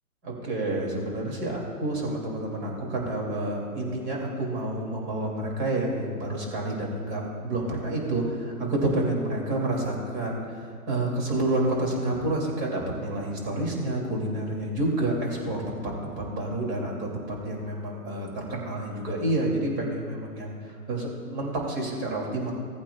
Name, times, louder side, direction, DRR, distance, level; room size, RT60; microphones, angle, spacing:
voice 1, 0.2-22.5, right 1 dB, 20° right, -1 dB, 2.7 m, -29 dB
17.5 x 8.6 x 2.4 m, 2.1 s
hypercardioid pair, 145°, 46 cm